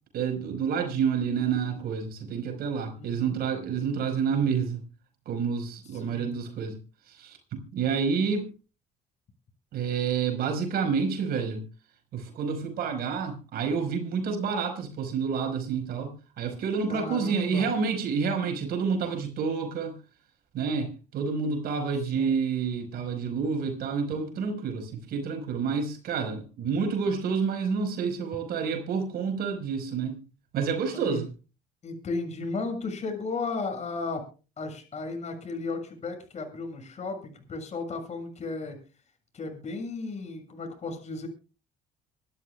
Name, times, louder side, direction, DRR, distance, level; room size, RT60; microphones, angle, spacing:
voice 1, 0.1-4.8 5.2-6.8 7.1-8.5 9.7-11.6 12.1-20.0 20.5-30.2 30.5-31.3, right 6 dB, 65° right, 5.1 m, -29 dB
voice 2, 2.9-3.4 5.9-6.3 16.9-17.7 22.1-22.4 30.9-31.2 31.8-34.2 34.6-38.8 39.3-41.3, left 3 dB, 40° left, 6.9 m, -34 dB
25.5 x 13.0 x 2.4 m
cardioid pair, 110°, 17 cm